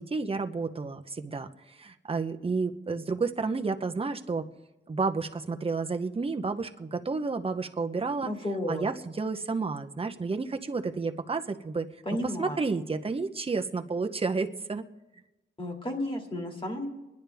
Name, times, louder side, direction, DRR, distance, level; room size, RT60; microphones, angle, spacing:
voice 1, 0.0-4.4 4.9-8.3 8.7-11.9 12.4-14.8, right 4 dB, 30° right, 6 dB, 0.7 m, -31 dB
voice 2, 8.2-8.9 12.1-12.6 15.6-16.9, left 1 dB, 25° left, 1 dB, 2.2 m, -32 dB
26.5 x 10.5 x 3.4 m, 1.0 s
wide cardioid pair, 125°, 20 cm